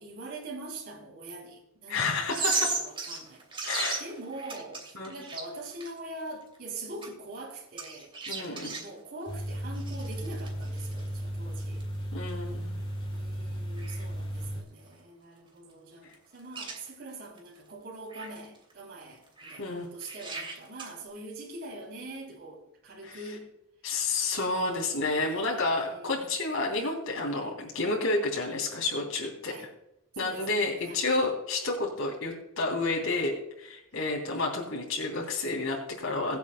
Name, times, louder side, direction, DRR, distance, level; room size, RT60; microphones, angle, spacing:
voice 1, 0.0-11.9 13.1-23.5 23.9-24.0 25.2-26.3 29.5-29.7 30.1-31.0 33.9-34.2, right 2 dB, 50° right, 3.1 m, -44 dB
voice 2, 1.9-2.7 3.6-4.0 4.9-5.1 8.3-8.8 12.1-12.8 19.6-19.9 23.0-23.2 23.8-29.7 30.2-36.4, left 3 dB, 80° left, 3.0 m, -30 dB
sound 1, 2.3-6.0 6.6-6.7 7.0-7.1 7.8-8.9 9.7-11.0 11.6-11.8 12.3-12.4 12.8-12.9 13.1-13.2 13.8-14.1 14.4-14.5 15.0-15.1 16.1-16.2 16.4-16.8 17.4-17.5 18.1-18.7 19.3-19.6 20.0-21.0, right 4 dB, 25° right, 2.6 m, -35 dB
sound 2, 9.3-14.6, equal, 25° left, 2.1 m, -35 dB
22.5 x 8.1 x 2.2 m
head